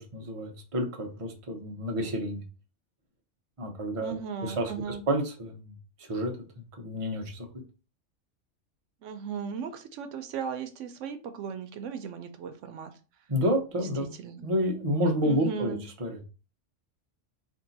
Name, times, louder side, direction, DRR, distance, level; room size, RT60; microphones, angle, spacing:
voice 1, 0.0-2.4 3.6-7.6 13.3-14.1 14.4-16.2, equal, 30° right, 2 dB, 0.8 m, -30 dB
voice 2, 4.0-5.0 9.0-12.9 13.8-14.5 15.2-15.8, right 7 dB, 80° right, 8 dB, 0.9 m, -37 dB
3.5 x 2.7 x 3.9 m, 0.34 s
omnidirectional pair, 1.3 m